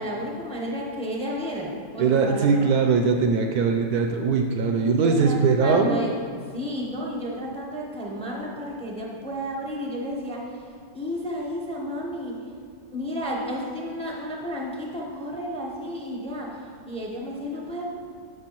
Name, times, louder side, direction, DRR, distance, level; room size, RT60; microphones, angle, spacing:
voice 1, 0.0-2.5 5.0-6.1 6.5-10.6 10.9-12.4 12.9-16.5 16.9-17.8, equal, 5° left, -2 dB, 0.5 m, -32 dB
voice 2, 2.0-6.0, right 5 dB, 70° right, 4 dB, 1.0 m, -21 dB
12.5 x 5.5 x 3.0 m, 2.1 s
omnidirectional pair, 1.9 m